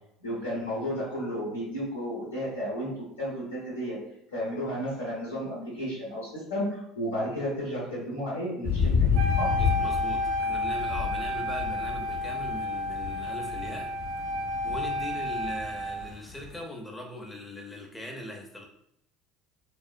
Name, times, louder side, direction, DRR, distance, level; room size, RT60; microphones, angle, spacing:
voice 1, 0.2-4.0 4.3-9.6, equal, 75° left, -5 dB, 0.9 m, -33 dB
sound 1, 8.6-16.5, left 6 dB, 50° left, 0.6 m, -30 dB
Wind instrument woodwind instrument, 9.1-16.1, left 1 dB, 55° right, 0.4 m, -31 dB
voice 2, 9.6-13.9 14.6-18.7, equal, 10° left, 1 dB, 0.7 m, -40 dB
3.4 x 2.1 x 2.6 m, 0.78 s
figure-of-eight pair, 65°, 0 cm